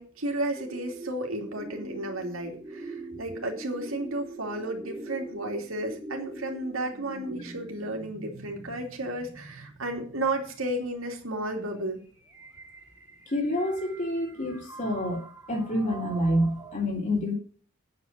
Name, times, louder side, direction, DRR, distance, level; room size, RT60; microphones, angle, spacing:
voice 1, 0.0-12.0, right 1 dB, 75° right, 2 dB, 3.0 m, -33 dB
sound 1, 0.6-16.7, right 3 dB, 15° right, 2.8 m, -44 dB
voice 2, 13.3-17.3, left 1 dB, 35° left, 1 dB, 3.7 m, -28 dB
8.7 x 8.6 x 7.5 m, 0.43 s
head